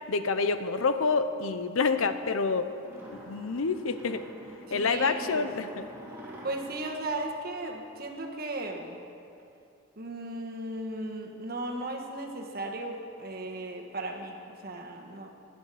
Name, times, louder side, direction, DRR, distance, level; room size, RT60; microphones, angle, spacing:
voice 1, 0.1-2.7 3.1-4.2 4.7-5.8, left 4 dB, 75° left, 10 dB, 0.7 m, -27 dB
sound 1, 2.8-8.2, equal, 10° right, 2.1 m, -47 dB
voice 2, 4.7-5.5 6.4-9.0 10.0-15.3, right 2 dB, 45° right, 2 dB, 1.4 m, -36 dB
19.0 x 10.0 x 5.0 m, 2.6 s
head